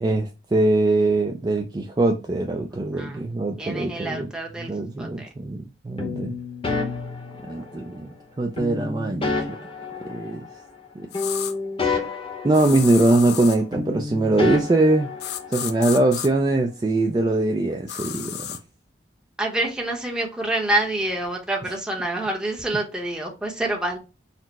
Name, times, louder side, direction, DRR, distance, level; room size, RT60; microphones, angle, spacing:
voice 1, 0.0-4.3 4.6-6.3 7.5-9.6 10.0-10.4 11.0-11.1 12.4-15.1 15.5-18.5, right 2 dB, 25° right, 0.3 m, -22 dB
voice 2, 3.6-4.7 5.0-5.3 19.4-24.0, right 1 dB, 5° right, 0.8 m, -27 dB
sound 1, 6.0-8.0 8.6-10.9 11.1-13.5 13.7-15.8, left 3 dB, 30° left, 0.8 m, -30 dB
sound 2, 11.1-11.5 12.5-13.6 15.2-16.3 17.9-18.6, left 10 dB, 65° left, 0.4 m, -32 dB
4.2 x 2.0 x 4.1 m
head